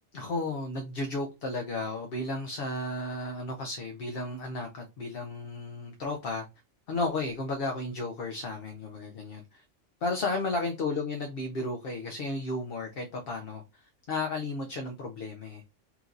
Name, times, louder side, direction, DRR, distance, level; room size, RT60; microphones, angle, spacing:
voice 1, 0.1-6.5 6.9-9.6 10.0-15.6, left 2 dB, 55° left, 0.8 m, -33 dB
5.8 x 2.7 x 2.4 m
omnidirectional pair, 1.3 m